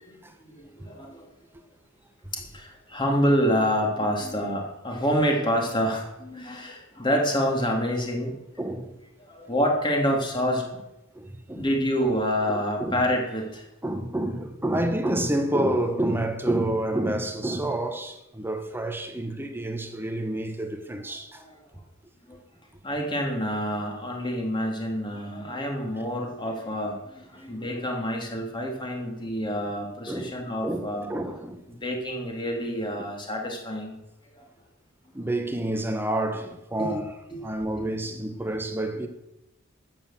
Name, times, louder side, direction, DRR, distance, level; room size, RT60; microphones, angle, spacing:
voice 1, 0.5-1.2 2.3-8.3 9.2-10.8 11.5-13.7 18.4-18.5 21.3-21.6 22.8-31.1 31.7-34.0 34.3-34.5 36.8-37.0 37.3-37.4, equal, 20° left, 3.2 m, -27 dB
voice 2, 8.6-8.9 11.1-11.6 12.5-13.1 13.8-21.4 27.4-27.5 30.1-30.4 30.6-31.6 32.9-33.0 35.1-37.1 37.4-39.1, right 1 dB, 10° right, 1.2 m, -29 dB
13.0 x 9.3 x 7.6 m
head